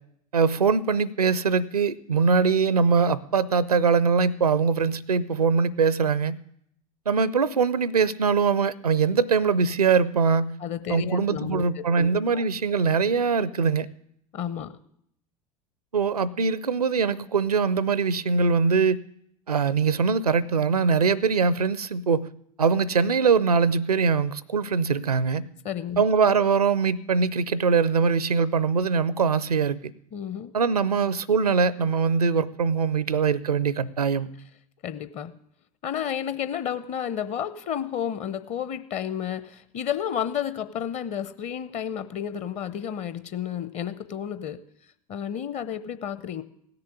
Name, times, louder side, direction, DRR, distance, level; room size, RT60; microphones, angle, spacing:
voice 1, 0.3-6.4 7.1-10.6 10.9-13.9 15.9-19.0 19.5-22.3 22.6-25.5 26.0-29.8 30.5-34.3, right 5 dB, 80° right, 21 dB, 0.5 m, -22 dB
voice 2, 10.6-12.4 14.3-14.7 25.6-26.0 30.1-30.5 34.8-35.3 35.8-44.6 45.1-46.4, left 9 dB, 35° left, 13 dB, 0.9 m, -31 dB
16.5 x 6.9 x 9.3 m, 0.72 s
figure-of-eight pair, 80°, 19 cm